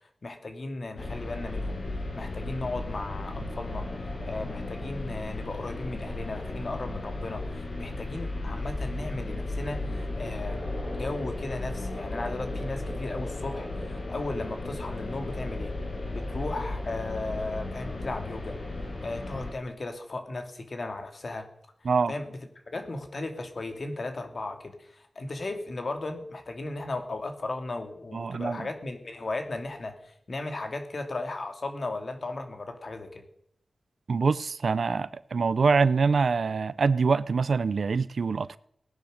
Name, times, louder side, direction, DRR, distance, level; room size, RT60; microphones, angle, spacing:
voice 1, 0.2-1.8 2.1-3.9 4.3-15.7 16.1-18.6 19.0-21.5 21.8-22.4 22.7-33.2, left 2 dB, 50° left, 2.6 m, -36 dB
sound 1, 1.0-19.5, left 2 dB, 70° left, 6.0 m, -35 dB
voice 2, 28.1-28.7 34.1-38.6, right 5 dB, 75° right, 0.6 m, -25 dB
18.5 x 10.5 x 6.6 m
wide cardioid pair, 100°, 0 cm